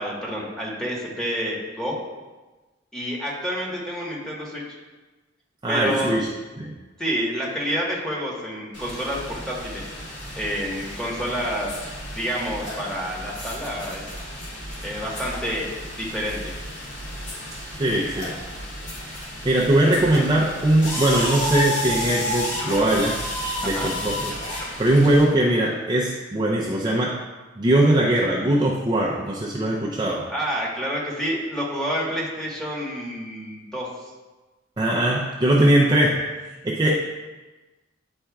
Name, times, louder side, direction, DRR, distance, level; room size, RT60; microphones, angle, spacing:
voice 1, 0.0-2.0 2.9-4.6 5.7-6.2 7.0-9.8 10.4-11.7 12.1-14.1 14.8-15.7 16.0-16.5 23.6-23.9 30.3-33.9, equal, 5° left, -5 dB, 1.3 m, -28 dB
voice 2, 5.6-6.3 6.6-6.7 17.8-18.4 19.1-23.2 23.6-24.4 24.8-27.3 27.6-30.3 34.8-36.3 36.6-37.0, right 1 dB, 25° right, -4 dB, 0.5 m, -21 dB
sound 1, 8.7-25.2, left 1 dB, 75° left, 2.0 m, -32 dB
9.9 x 4.3 x 2.3 m, 1.2 s
head